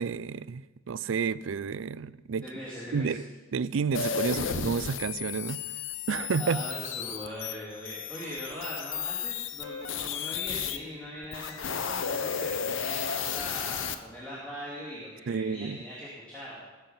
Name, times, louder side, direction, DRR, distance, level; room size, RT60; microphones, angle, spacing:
voice 1, 0.0-2.4 2.9-3.2 3.5-5.6 6.1-6.6 15.3-15.8, right 5 dB, 75° right, 0.4 m, -30 dB
voice 2, 2.4-3.2 4.4-4.5 6.4-16.6, equal, 5° left, 3.1 m, -41 dB
sound 1, 3.9-10.8 11.2-13.9, left 7 dB, 70° left, 0.7 m, -33 dB
19.0 x 7.2 x 5.8 m
head